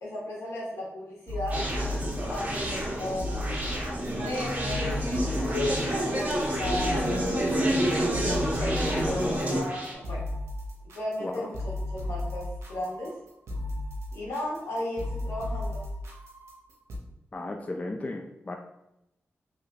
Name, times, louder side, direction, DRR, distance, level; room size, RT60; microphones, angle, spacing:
voice 1, 0.0-1.6 2.3-3.3 4.2-7.9 8.5-10.2 10.9-13.1 14.1-15.8, left 1 dB, 80° left, -6 dB, 1.5 m, -35 dB
sound 1, 1.3-17.0, left 1 dB, 80° right, 0.7 m, -35 dB
Conversation, 1.5-9.9, right 1 dB, 35° right, 1.2 m, -28 dB
voice 2, 11.2-11.5 17.3-18.6, left 2 dB, 30° left, 2 dB, 0.3 m, -35 dB
3.2 x 3.1 x 2.4 m, 0.87 s
cardioid pair, 65°, 5 cm